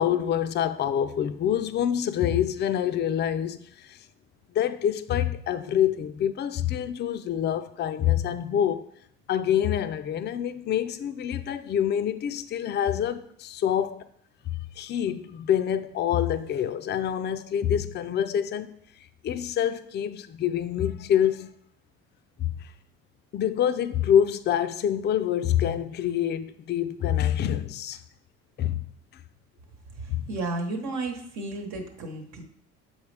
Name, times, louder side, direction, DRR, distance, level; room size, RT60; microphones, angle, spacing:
voice 1, 0.0-4.0 4.5-8.9 9.3-14.1 14.8-18.7 19.2-21.5 22.4-22.7 23.3-28.0 28.6-28.8 29.1-29.2 30.1-30.2, left 10 dB, 35° left, 0.4 m, -26 dB
voice 2, 30.0-32.4, right 2 dB, 70° right, 1.1 m, -33 dB
7.1 x 4.2 x 3.3 m
cardioid pair, 95°, 29 cm